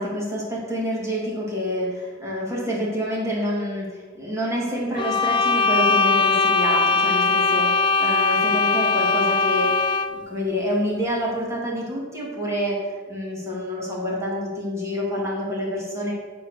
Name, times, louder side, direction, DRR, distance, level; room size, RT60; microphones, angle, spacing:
voice 1, 0.0-9.7 10.1-16.1, equal, 15° right, -5 dB, 2.1 m, -27 dB
sound 1, 5.0-10.2, left 4 dB, 25° left, 0.4 m, -20 dB
11.0 x 3.8 x 6.5 m, 1.5 s
head